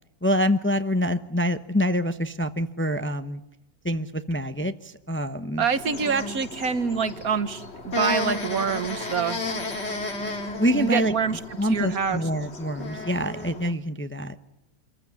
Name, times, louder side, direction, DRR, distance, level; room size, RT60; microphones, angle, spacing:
voice 1, 0.2-3.4 3.8-5.7 10.6-14.3, equal, 15° left, 10 dB, 0.4 m, -26 dB
voice 2, 5.6-9.4 10.7-11.4 11.7-12.2, right 6 dB, 60° right, 12 dB, 1.6 m, -26 dB
sound 1, 5.7-13.7, left 2 dB, 40° left, 2.4 m, -33 dB
26.5 x 15.0 x 9.7 m, 0.95 s
omnidirectional pair, 1.8 m